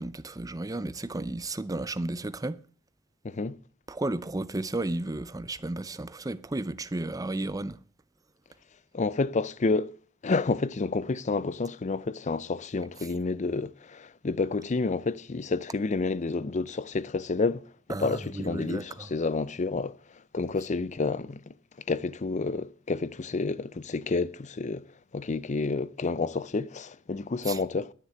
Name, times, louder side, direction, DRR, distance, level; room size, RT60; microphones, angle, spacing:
voice 1, 0.0-2.6 3.9-7.8 17.9-19.1 27.5-27.6, right 2 dB, 20° right, 0.6 m, -33 dB
voice 2, 3.2-3.6 8.9-9.9 10.2-17.7 18.0-20.0 20.3-21.5 21.9-24.9 25.1-27.9, left 3 dB, 35° left, 0.5 m, -29 dB
10.0 x 9.9 x 7.8 m
head